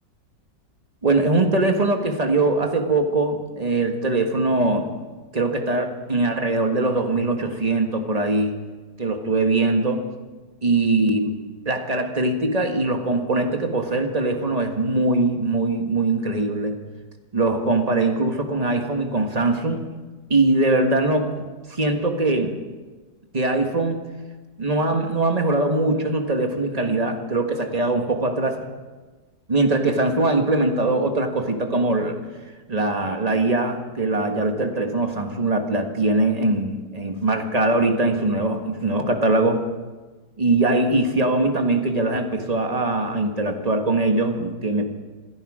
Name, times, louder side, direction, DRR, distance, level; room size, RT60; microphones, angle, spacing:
voice 1, 1.0-4.9 5.3-8.6 9.0-10.0 10.6-11.4 11.6-16.7 17.3-19.8 20.3-21.3 21.7-22.5 23.3-24.0 24.6-28.7 29.5-32.2 32.7-39.6 40.4-44.9, right 2 dB, 25° right, 4 dB, 1.4 m, -22 dB
27.0 x 10.5 x 5.0 m, 1.3 s
omnidirectional pair, 2.0 m